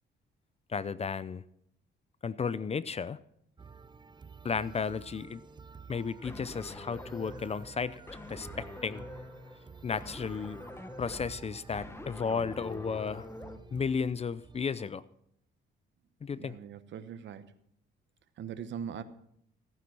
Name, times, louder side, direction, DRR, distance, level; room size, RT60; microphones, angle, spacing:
voice 1, 0.7-1.4 2.2-3.2 4.4-5.4 5.9-7.9 8.3-9.0 9.8-10.6 11.0-13.3 13.7-15.0 16.2-16.5, left 5 dB, 30° left, 18 dB, 0.6 m, -33 dB
sound 1, 3.6-14.9, right 5 dB, 20° right, 0.6 m, -51 dB
sound 2, 6.2-13.6, left 2 dB, 10° left, 1.2 m, -45 dB
voice 2, 16.4-17.5 18.4-19.0, right 8 dB, 65° right, 12 dB, 1.1 m, -41 dB
15.0 x 9.5 x 6.1 m, 0.72 s
cardioid pair, 90°, 20 cm